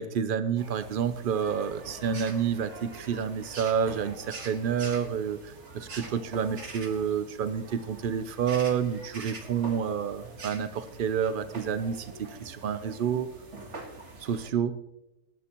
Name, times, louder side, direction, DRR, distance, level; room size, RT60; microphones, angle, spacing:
voice 1, 0.0-13.3 14.2-14.8, right 7 dB, 70° right, 11 dB, 0.5 m, -29 dB
sound 1, 0.6-14.5, right 3 dB, 50° right, 1.8 m, -44 dB
18.0 x 11.0 x 2.9 m, 0.90 s
omnidirectional pair, 1.6 m